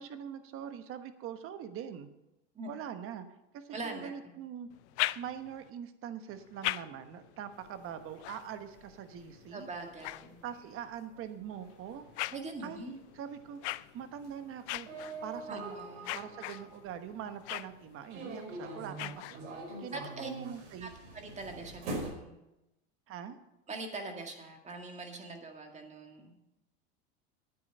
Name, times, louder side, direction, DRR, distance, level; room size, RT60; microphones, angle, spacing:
voice 1, 0.0-2.1 2.7-3.3 3.5-4.7 5.1-9.7 10.4-12.0 12.6-12.8 13.1-14.9 15.2-15.8 16.1-19.4 19.8-20.9 23.1-23.4, right 9 dB, 40° right, 10 dB, 1.1 m, -43 dB
voice 2, 3.7-4.3 9.5-10.4 12.3-13.0 15.5-16.1 19.9-20.3 20.8-20.9 21.1-22.4 23.7-26.4, right 3 dB, 20° right, 3 dB, 2.0 m, -43 dB
sound 1, 4.7-5.7 6.3-10.9 11.5-19.8, left 19 dB, 75° left, 0.5 m, -42 dB
sound 2, 7.6-17.4 18.1-22.1, right 2 dB, 85° right, 5.0 m, -45 dB
9.7 x 9.3 x 6.7 m, 0.94 s
supercardioid pair, 130°, 35 cm